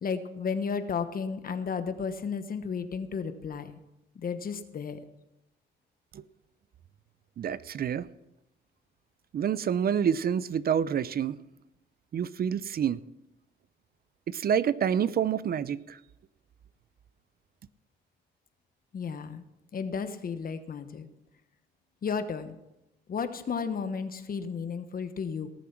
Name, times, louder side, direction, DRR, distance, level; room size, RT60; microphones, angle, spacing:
voice 1, 0.0-3.7 4.1-5.0 18.9-19.4 19.7-21.1 22.0-22.6 23.1-25.5, left 6 dB, 45° left, 10 dB, 1.2 m, -33 dB
voice 2, 7.4-8.0 9.3-11.4 12.1-13.0 14.3-16.0, right 8 dB, 50° right, 17 dB, 0.6 m, -27 dB
18.5 x 7.2 x 6.0 m, 0.91 s
cardioid pair, 90°, 20 cm